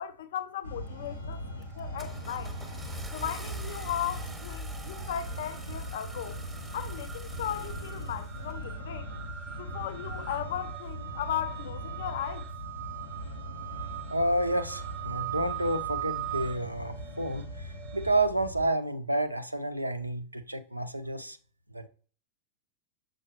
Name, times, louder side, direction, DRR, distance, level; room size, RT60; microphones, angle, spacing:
voice 1, 0.0-1.4 1.8-2.5 3.1-6.4 6.7-9.1 9.6-12.5, left 10 dB, 55° left, 0.4 m, -36 dB
sound 1, 0.6-18.7, equal, 80° left, 1.1 m, -40 dB
sound 2, 0.7-1.3 1.6-18.2, right 13 dB, 30° right, 0.5 m, -42 dB
Car / Engine starting, 0.8-1.2 1.6-8.6, right 3 dB, 10° right, 0.8 m, -45 dB
voice 2, 14.1-21.4 21.7-21.9, right 1 dB, 85° right, 0.5 m, -30 dB
6.3 x 5.5 x 2.9 m
figure-of-eight pair, 90°, 0 cm